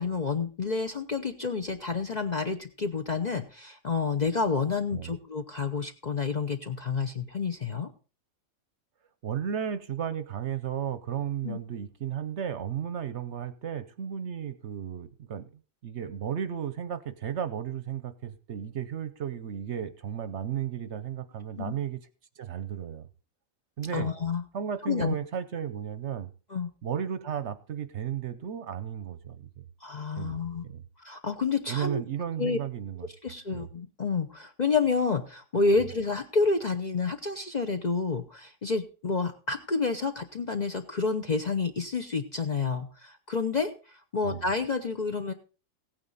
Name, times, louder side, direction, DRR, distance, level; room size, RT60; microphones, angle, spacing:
voice 1, 0.0-7.9 11.4-11.6 21.6-21.7 23.9-24.4 24.8-25.1 26.5-26.7 29.8-30.6 31.0-32.0 32.4-32.6 33.2-45.3, left 4 dB, 40° left, 5 dB, 0.7 m, -29 dB
voice 2, 9.2-15.5 15.8-22.0 22.4-23.1 23.8-24.1 24.5-26.3 26.8-29.5 30.2-30.8 31.7-33.1 33.5-33.7 35.8-35.9 44.2-44.4, right 9 dB, 60° right, 12 dB, 0.9 m, -34 dB
16.0 x 9.0 x 4.0 m, 0.35 s
omnidirectional pair, 1.5 m